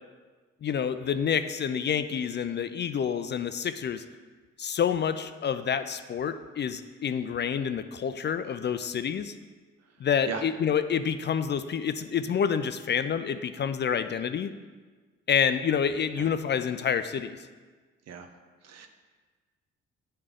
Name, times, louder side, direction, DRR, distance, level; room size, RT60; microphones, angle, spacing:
voice 1, 0.6-4.0 4.6-9.3 10.0-14.5 15.3-17.4, left 7 dB, 40° left, 11 dB, 0.4 m, -28 dB
voice 2, 10.3-10.4 16.2-16.3 18.1-18.3 18.6-18.9, right 6 dB, 60° right, 6 dB, 0.8 m, -37 dB
9.5 x 3.3 x 3.6 m, 1.4 s
hypercardioid pair, 45°, 29 cm